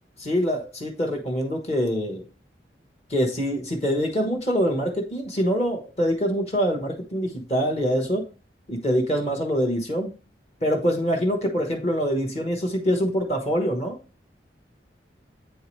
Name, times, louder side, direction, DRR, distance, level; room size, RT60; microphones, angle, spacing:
voice 1, 0.2-2.2 3.1-8.3 8.7-10.1 10.6-14.0, equal, 35° left, 3 dB, 1.2 m, -24 dB
8.4 x 4.7 x 3.2 m, 0.34 s
head